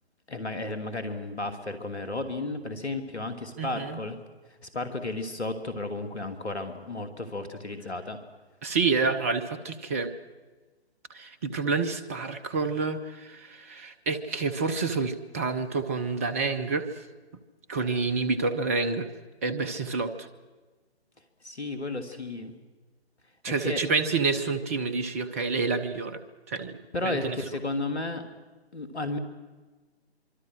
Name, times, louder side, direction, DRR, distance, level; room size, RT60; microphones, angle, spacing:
voice 1, 0.3-4.2 4.6-8.2 21.4-22.5 23.5-23.8 26.9-28.2 28.7-29.2, left 2 dB, 75° left, 8 dB, 2.7 m, -33 dB
voice 2, 3.6-4.0 8.6-10.1 11.1-16.9 17.7-19.1 19.4-20.3 23.4-26.2 26.5-26.8 27.0-27.4, right 4 dB, 15° right, 11 dB, 0.6 m, -28 dB
25.5 x 24.5 x 6.4 m, 1.3 s
figure-of-eight pair, 140°, 33 cm